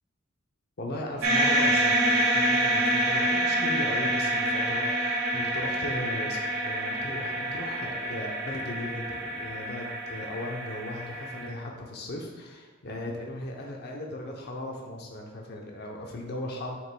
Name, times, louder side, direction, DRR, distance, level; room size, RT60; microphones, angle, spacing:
voice 1, 0.8-16.8, left 1 dB, 50° left, 0 dB, 0.8 m, -37 dB
sound 1, 1.2-11.5, right 1 dB, 80° right, 1.6 m, -27 dB
7.6 x 6.3 x 2.3 m, 1.5 s
head